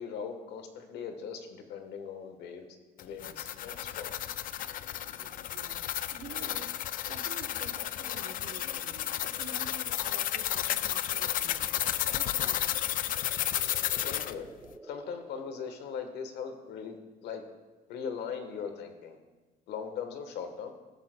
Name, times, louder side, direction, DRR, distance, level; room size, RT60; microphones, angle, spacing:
voice 1, 0.0-2.7 3.0-4.2 14.0-14.5 14.8-17.4 17.9-19.2 19.7-20.7, left 6 dB, 80° left, 7 dB, 1.2 m, -39 dB
sound 1, 3.0-14.3, left 12 dB, 55° left, 0.4 m, -32 dB
voice 2, 5.2-11.8 12.1-13.0, right 6 dB, 85° right, 1 dB, 1.0 m, -49 dB
sound 2, 12.6-16.7, right 2 dB, 10° right, 0.5 m, -53 dB
17.0 x 7.6 x 2.2 m, 1.2 s
cardioid pair, 110°, 17 cm